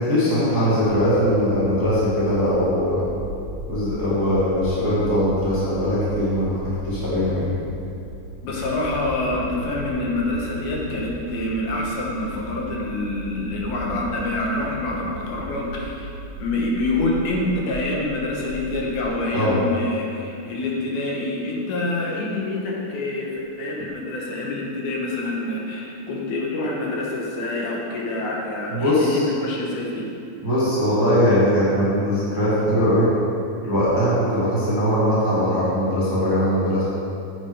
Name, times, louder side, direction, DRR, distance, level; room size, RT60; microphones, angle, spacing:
voice 1, 0.0-3.1 3.7-7.6 19.3-19.6 28.7-29.2 30.4-33.1 33.6-36.8, equal, 10° right, -10 dB, 1.8 m, -21 dB
sound 1, 0.7-19.1, equal, 55° right, 1.4 m, -37 dB
voice 2, 8.4-16.1 16.4-30.1, left 2 dB, 75° left, -2 dB, 2.7 m, -26 dB
7.9 x 7.6 x 4.9 m, 2.7 s
omnidirectional pair, 3.6 m